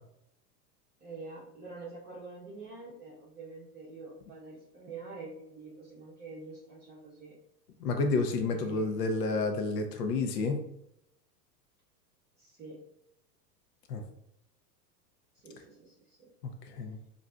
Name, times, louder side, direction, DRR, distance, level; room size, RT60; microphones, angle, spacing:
voice 1, 1.0-7.4 8.4-9.2 12.4-12.8 15.3-16.3, right 3 dB, 20° right, -6 dB, 0.6 m, -46 dB
voice 2, 7.8-10.6 13.9-14.0 16.4-17.0, left 3 dB, 85° left, 5 dB, 0.7 m, -30 dB
3.9 x 2.6 x 2.3 m, 0.78 s
hypercardioid pair, 105°, 48 cm